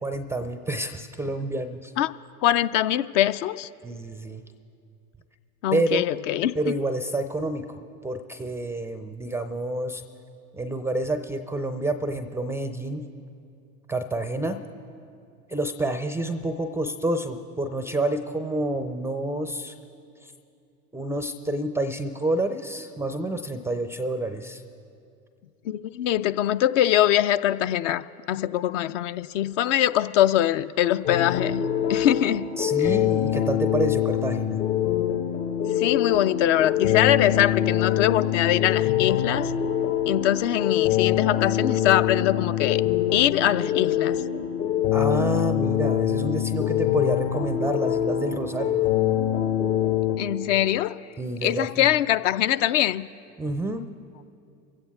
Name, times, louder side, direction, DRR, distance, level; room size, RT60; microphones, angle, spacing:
voice 1, 0.0-1.9 3.8-4.4 5.7-6.1 6.6-10.0 10.5-13.0 13.9-14.6 15.5-19.8 20.2-20.3 20.9-24.6 32.6-34.6 44.9-48.9 51.2-51.9 53.4-53.8, right 2 dB, 5° right, 0.4 m, -28 dB
voice 2, 2.4-3.7 5.6-6.5 25.6-31.6 31.9-32.5 32.8-32.9 35.8-39.5 40.1-42.8 43.1-44.2 50.2-51.0 51.4-53.1, left 12 dB, 55° left, 0.5 m, -23 dB
sound 1, 31.0-50.2, left 10 dB, 70° left, 2.2 m, -24 dB
24.0 x 16.0 x 2.3 m
figure-of-eight pair, 80°, 46 cm